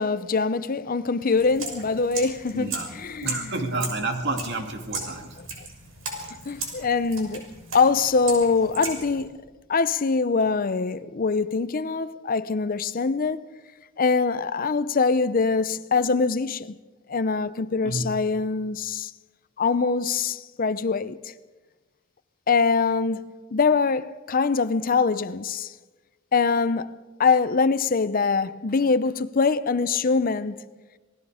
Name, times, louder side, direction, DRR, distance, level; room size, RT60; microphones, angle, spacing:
voice 1, 0.0-2.7 3.0-3.5 6.4-9.4 9.7-13.4 14.0-16.8 17.1-19.1 19.6-21.3 22.5-25.7 26.3-26.9 27.2-30.7, left 4 dB, 45° left, 0.6 m, -23 dB
sound 1, 1.3-9.2, right 3 dB, 85° right, 6.2 m, -36 dB
voice 2, 2.5-2.9 3.2-5.6 6.1-6.3 17.8-18.1, right 2 dB, 60° right, 2.5 m, -30 dB
27.0 x 19.5 x 5.0 m
head